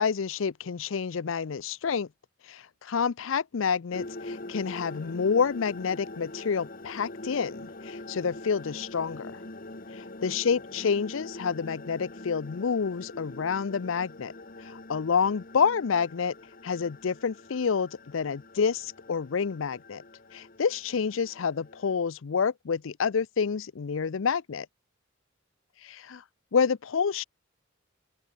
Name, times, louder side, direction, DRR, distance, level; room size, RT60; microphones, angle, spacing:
voice 1, 0.0-2.1 2.5-9.4 10.0-14.3 14.6-16.3 16.6-20.0 20.3-24.7 25.8-26.2 26.5-27.2, left 6 dB, 70° left, 0.5 m, -28 dB
sound 1, 3.9-21.9, left 2 dB, 45° left, 2.0 m, -44 dB
open air
head